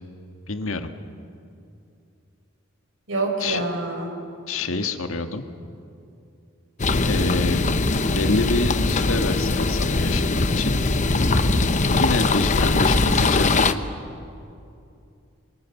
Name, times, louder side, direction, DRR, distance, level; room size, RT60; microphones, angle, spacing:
voice 1, 0.5-0.9 3.4-3.6 4.5-5.4 7.0-7.7 8.1-10.7 11.9-13.6, left 3 dB, 80° left, 7 dB, 1.5 m, -26 dB
voice 2, 3.1-4.1 12.5-13.0, right 2 dB, 70° right, 2 dB, 4.7 m, -27 dB
sound 1, 6.8-13.7, left 3 dB, 35° left, 0.8 m, -21 dB
27.0 x 23.5 x 7.1 m, 2.5 s
head